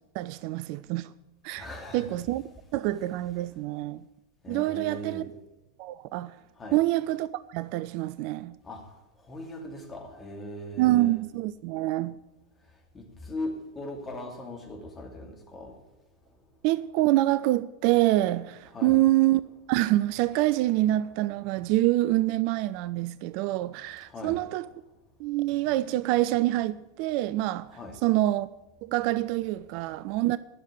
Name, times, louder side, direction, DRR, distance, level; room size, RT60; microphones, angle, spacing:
voice 1, 0.1-1.1 1.4-1.7 1.9-2.4 2.7-4.0 4.5-5.2 5.8-6.4 6.7-8.6 10.8-12.2 16.6-19.4 19.7-24.7 25.2-27.7 28.0-28.5 28.8-30.4, right 16 dB, 45° right, 0.3 m, -26 dB
voice 2, 1.5-2.2 4.4-5.3 6.6-6.8 8.6-8.9 9.2-11.2 12.9-15.8 18.7-19.0 21.5-21.6 24.0-24.4 27.7-28.0, left 1 dB, 20° left, 2.5 m, -39 dB
11.5 x 6.4 x 9.2 m
figure-of-eight pair, 90°, 0 cm